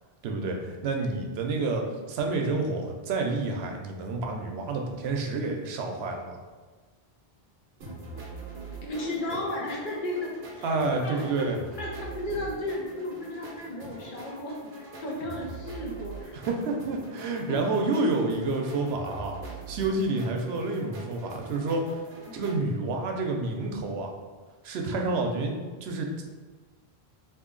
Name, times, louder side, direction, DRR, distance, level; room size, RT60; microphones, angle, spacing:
voice 1, 0.2-6.4 10.6-11.6 16.3-22.0 22.3-24.1 24.6-26.2, right 3 dB, 90° right, 2 dB, 0.8 m, -29 dB
sound 1, 7.7-12.0 12.3-15.3 15.6-16.4 16.6-22.5, left 1 dB, 75° left, 1.0 m, -49 dB
sound 2, 7.8-22.6, right 3 dB, 60° right, 0.9 m, -44 dB
voice 2, 8.8-10.8 11.0-11.5 11.8-16.4 17.5-17.6 22.3-22.8, left 1 dB, 60° left, -1 dB, 0.7 m, -34 dB
2.8 x 2.6 x 3.7 m, 1.4 s
omnidirectional pair, 1.0 m